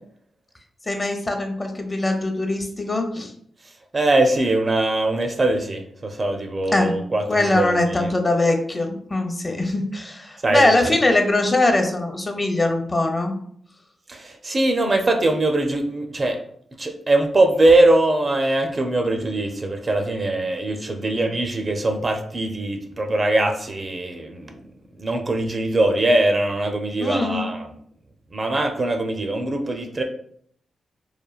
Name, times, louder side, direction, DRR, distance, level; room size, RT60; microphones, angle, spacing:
voice 1, 0.9-3.3 6.7-6.9 7.3-13.4 27.0-27.5, left 2 dB, 30° left, 4 dB, 0.6 m, -22 dB
voice 2, 3.9-8.1 10.4-10.9 14.1-16.4 16.8-24.6 25.0-27.7 28.3-30.0, right 2 dB, 45° right, 4 dB, 0.5 m, -21 dB
3.1 x 2.2 x 2.3 m, 0.64 s
supercardioid pair, 45°, 0 cm